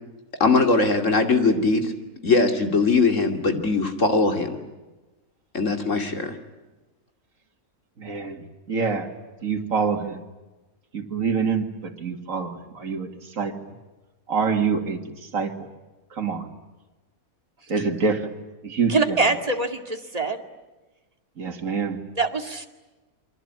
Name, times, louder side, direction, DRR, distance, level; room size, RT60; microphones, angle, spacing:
voice 1, 0.4-1.9 2.2-4.6 5.5-6.4, left 3 dB, 55° left, 5 dB, 3.0 m, -20 dB
voice 2, 8.0-9.1 9.4-10.2 10.9-13.5 14.3-15.7 16.1-16.5 17.7-18.3 18.6-19.2 21.4-22.0, right 5 dB, 65° right, 3 dB, 2.7 m, -26 dB
voice 3, 18.9-20.4 22.2-22.7, right 3 dB, 25° right, 5 dB, 2.2 m, -24 dB
28.5 x 23.5 x 8.9 m, 1.1 s
omnidirectional pair, 1.5 m